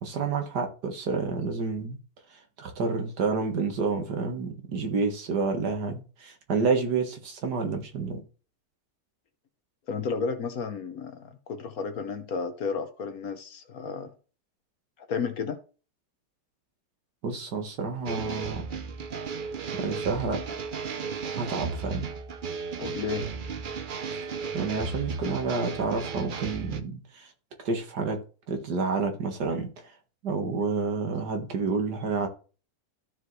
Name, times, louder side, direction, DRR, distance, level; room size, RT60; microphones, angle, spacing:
voice 1, 0.0-2.0 2.3-8.2 17.2-18.6 19.7-20.4 21.3-22.1 24.1-24.3 24.5-27.3 27.6-28.2 28.5-29.9 30.2-32.3, right 4 dB, 70° right, 2.0 m, -29 dB
voice 2, 9.9-14.1 15.1-15.6 22.8-23.3, left 5 dB, 60° left, 1.4 m, -32 dB
sound 1, 18.1-26.8, right 5 dB, 85° right, 0.4 m, -34 dB
14.0 x 4.9 x 3.2 m
omnidirectional pair, 1.9 m